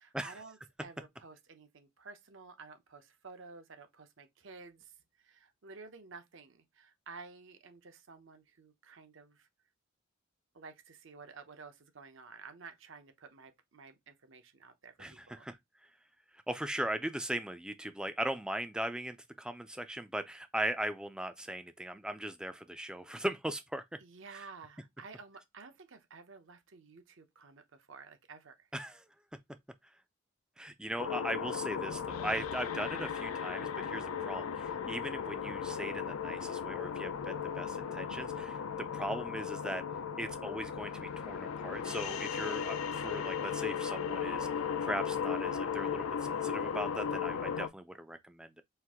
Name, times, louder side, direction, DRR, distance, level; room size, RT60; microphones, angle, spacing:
voice 1, 0.0-9.5 10.5-15.5 24.0-28.7, right 4 dB, 65° right, 0.8 m, -52 dB
voice 2, 15.0-15.6 16.5-24.0 28.7-29.0 30.6-39.8 40.2-48.6, right 1 dB, 5° right, 0.3 m, -39 dB
sound 1, 31.0-47.7, left 7 dB, 90° left, 0.5 m, -36 dB
4.4 x 2.5 x 3.5 m
head